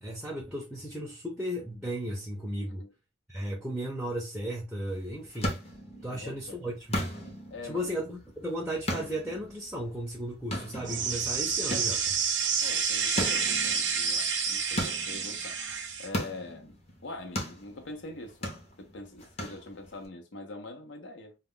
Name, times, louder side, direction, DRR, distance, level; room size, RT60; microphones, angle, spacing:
voice 1, 0.0-2.8 3.3-5.6 6.0-7.1 7.6-12.2, equal, ahead, 0.5 m, -35 dB
sound 1, 4.9-20.1, equal, 35° left, 0.7 m, -39 dB
voice 2, 6.1-6.6 7.5-7.9 12.6-15.6 16.0-16.7 17.0-18.5 18.8-21.4, left 2 dB, 75° left, 0.7 m, -43 dB
sound 2, 10.9-16.1, right 6 dB, 70° right, 0.6 m, -29 dB
2.2 x 2.1 x 3.6 m
head